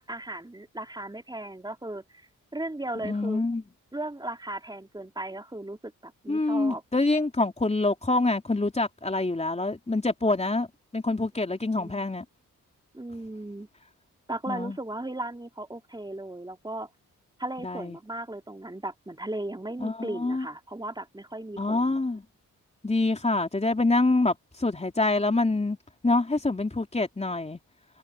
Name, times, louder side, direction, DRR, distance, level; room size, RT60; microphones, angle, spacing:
voice 1, 0.0-3.4 3.9-6.8 11.8-12.0 12.9-13.7 14.3-16.9 17.4-22.0, right 1 dB, 15° right, 3.8 m, -36 dB
voice 2, 3.0-3.6 6.3-10.7 10.9-12.2 14.5-14.8 17.6-18.0 19.8-20.5 21.6-22.2 22.8-25.8 26.0-27.6, left 2 dB, 20° left, 3.7 m, -26 dB
cardioid pair, 80°, 33 cm